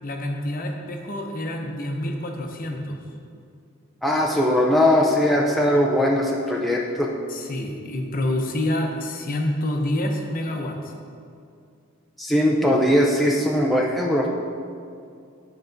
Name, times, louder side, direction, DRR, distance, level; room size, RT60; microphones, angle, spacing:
voice 1, 0.0-3.0 7.3-10.9, left 1 dB, 45° left, 2 dB, 0.8 m, -27 dB
voice 2, 4.0-7.1 12.2-14.3, left 1 dB, ahead, -2 dB, 0.5 m, -20 dB
10.5 x 5.0 x 4.0 m, 2.4 s
head